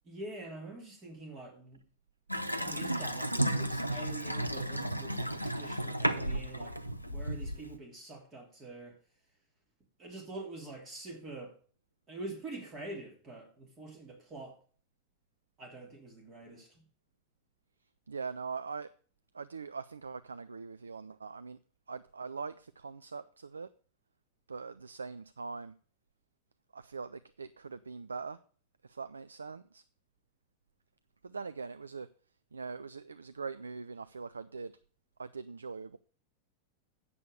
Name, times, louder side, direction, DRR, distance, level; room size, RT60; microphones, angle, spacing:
voice 1, 0.0-1.8 2.3-9.0 10.0-11.5 12.1-14.6 15.6-16.8, right 2 dB, 30° right, 2.9 m, -45 dB
Water tap faucet / Sink (filling or washing) / Bathtub (filling or washing), 2.3-7.8, right 1 dB, 90° left, 0.7 m, -33 dB
voice 2, 18.1-18.9 19.3-21.6 21.9-23.7 24.5-25.7 26.7-28.4 28.8-29.8 31.2-32.1 32.5-34.7 35.2-36.0, right 5 dB, 75° right, 0.4 m, -42 dB
8.5 x 6.9 x 6.5 m
figure-of-eight pair, 90°, 0 cm